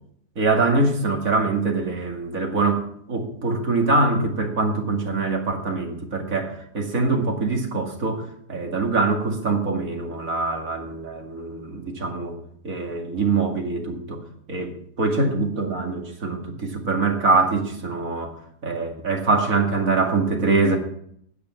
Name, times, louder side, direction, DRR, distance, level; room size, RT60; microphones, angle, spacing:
voice 1, 0.4-2.8 3.1-12.3 12.6-14.2 14.5-18.3 18.6-20.8, right 3 dB, 55° right, 2 dB, 2.6 m, -23 dB
9.6 x 8.5 x 8.3 m, 0.68 s
omnidirectional pair, 1.7 m